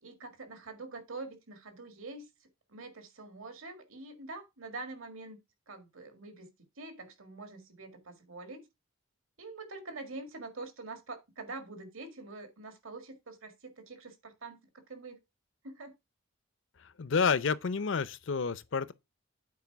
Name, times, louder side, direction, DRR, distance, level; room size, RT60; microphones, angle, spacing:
voice 1, 0.0-2.3 2.7-5.4 5.7-6.5 6.8-8.6 9.4-15.2 15.6-15.9, right 3 dB, 80° right, 1.9 m, -45 dB
voice 2, 16.8-18.9, left 5 dB, 65° left, 0.6 m, -30 dB
8.4 x 4.6 x 4.6 m
head